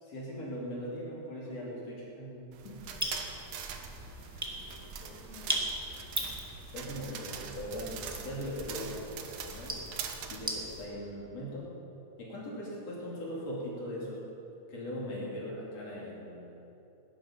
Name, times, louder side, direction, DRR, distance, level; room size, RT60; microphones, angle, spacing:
voice 1, 0.0-2.9 6.7-9.8 10.3-11.7 12.2-14.2 14.7-16.5, equal, 50° left, -5 dB, 3.7 m, -40 dB
sound 1, 2.5-10.4, right 7 dB, 65° right, 1.9 m, -44 dB
sound 2, 2.8-10.9, right 1 dB, 10° right, 0.7 m, -39 dB
voice 2, 4.5-5.7 15.1-16.2, left 2 dB, 45° right, -6 dB, 5.6 m, -52 dB
18.5 x 11.0 x 5.7 m, 2.9 s
omnidirectional pair, 3.8 m